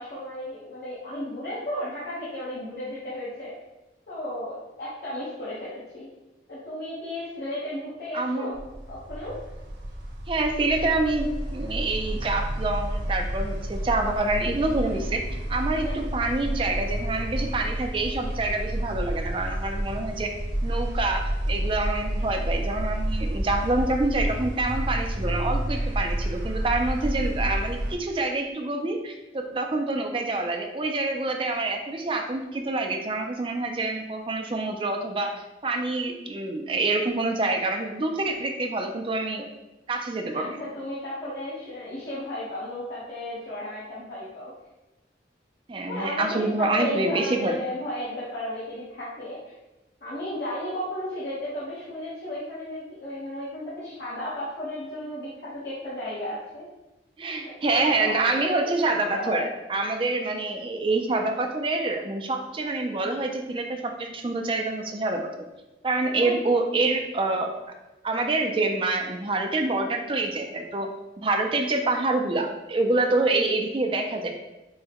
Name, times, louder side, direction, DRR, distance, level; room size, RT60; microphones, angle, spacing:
voice 1, 0.0-3.5 4.1-6.1 6.5-8.6 8.9-9.4 15.8-16.0 40.3-44.5 45.9-49.4 50.0-56.7 57.6-59.4 66.2-66.4, left 1 dB, 60° left, -10 dB, 1.0 m, -34 dB
voice 2, 8.1-8.5 10.3-15.2 15.5-20.3 20.6-35.3 35.6-39.5 39.9-40.6 45.7-47.5 57.2-65.5 65.8-67.5 68.0-70.9 71.2-74.3, right 2 dB, 30° right, 4 dB, 0.4 m, -26 dB
sound 1, 8.5-27.9, right 1 dB, 85° right, 1.3 m, -30 dB
5.4 x 2.2 x 2.9 m, 1.0 s
head